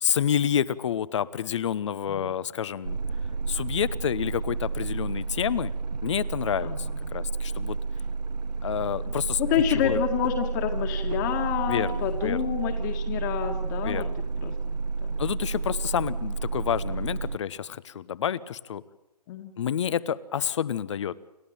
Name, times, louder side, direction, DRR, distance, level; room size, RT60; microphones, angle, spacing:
voice 1, 0.0-3.0 3.5-5.7 6.0-7.8 8.6-9.4 9.7-10.0 11.7-12.5 13.8-14.2 15.2-18.8 19.6-21.1, left 9 dB, 45° left, 18 dB, 1.0 m, -29 dB
sound 1, 2.8-17.4, right 4 dB, 85° right, 1.0 m, -31 dB
voice 2, 6.6-7.0 9.4-14.1 14.4-15.2 19.3-19.5, left 9 dB, 30° left, 4 dB, 2.0 m, -28 dB
29.0 x 12.5 x 8.9 m, 0.99 s
hypercardioid pair, 150°, 21 cm